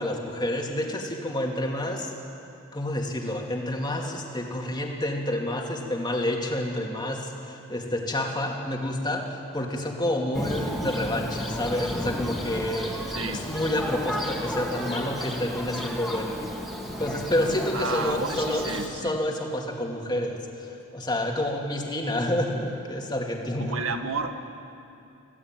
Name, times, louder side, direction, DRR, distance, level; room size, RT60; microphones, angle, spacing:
voice 1, 0.0-2.1 2.7-13.0 13.3-16.4 17.0-23.7, left 1 dB, 20° left, 1 dB, 2.6 m, -29 dB
Thunder, 10.3-18.9, equal, ahead, 2.8 m, -33 dB
voice 2, 17.7-19.2 21.4-21.5 23.6-24.5, right 4 dB, 80° right, 6 dB, 1.7 m, -31 dB
26.0 x 16.5 x 9.1 m, 2.7 s
head